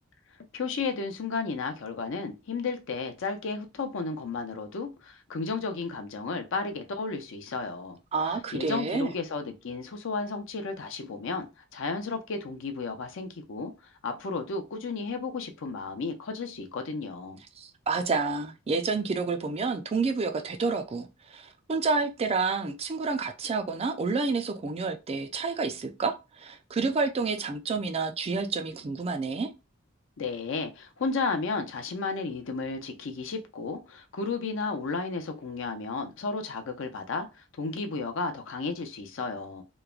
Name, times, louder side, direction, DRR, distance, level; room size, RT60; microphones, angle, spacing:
voice 1, 0.5-8.0 8.3-11.5 11.7-13.7 14.0-17.4 30.2-39.6, left 4 dB, 65° left, 0.5 m, -33 dB
voice 2, 8.1-9.1 17.6-29.5, right 4 dB, 30° right, 0.4 m, -29 dB
3.0 x 2.1 x 2.3 m
head